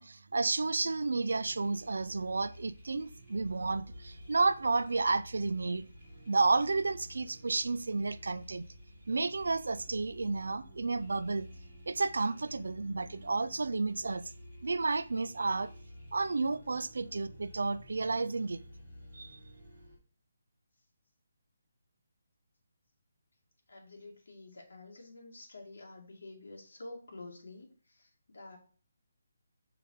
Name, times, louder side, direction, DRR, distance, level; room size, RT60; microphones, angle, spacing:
voice 1, 0.0-5.8 6.3-8.6 9.1-11.5 11.9-14.2 14.6-15.7 16.1-18.6 19.1-19.4, right 3 dB, 80° right, 0.5 m, -31 dB
sound 1, 1.3-20.0, equal, 5° left, 2.3 m, -52 dB
voice 2, 23.7-28.6, left 2 dB, 65° left, 2.1 m, -49 dB
5.5 x 3.7 x 5.6 m
hypercardioid pair, 180°, 0 cm